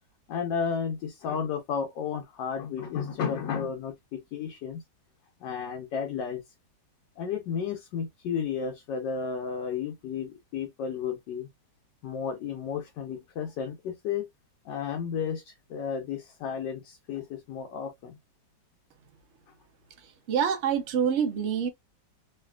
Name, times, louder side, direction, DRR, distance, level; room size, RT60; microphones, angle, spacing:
voice 1, 0.3-4.8 5.4-6.4 7.2-11.5 12.0-14.3 14.6-18.2, left 7 dB, 80° left, 1.3 m, -33 dB
voice 2, 20.3-21.7, right 7 dB, 60° right, 0.7 m, -26 dB
3.3 x 2.7 x 2.2 m
omnidirectional pair, 1.9 m